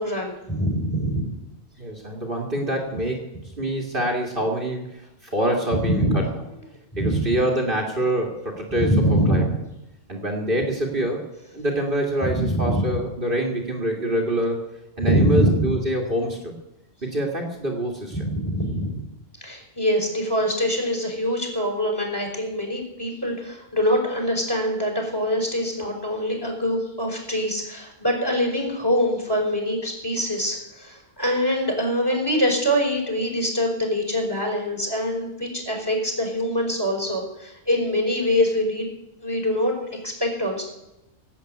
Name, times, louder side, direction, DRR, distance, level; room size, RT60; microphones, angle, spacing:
voice 1, 0.0-1.3 5.7-6.2 6.9-7.3 8.8-9.5 12.3-12.9 15.0-15.7 18.2-19.0 19.4-38.9 39.2-39.7 40.0-40.6, equal, 15° left, 1 dB, 4.8 m, -24 dB
voice 2, 1.8-3.2 3.6-6.3 7.0-9.6 10.1-11.2 11.5-14.6 15.0-16.5 17.0-18.2, right 1 dB, 40° right, 0 dB, 2.4 m, -25 dB
17.5 x 8.2 x 9.2 m, 0.90 s
omnidirectional pair, 1.4 m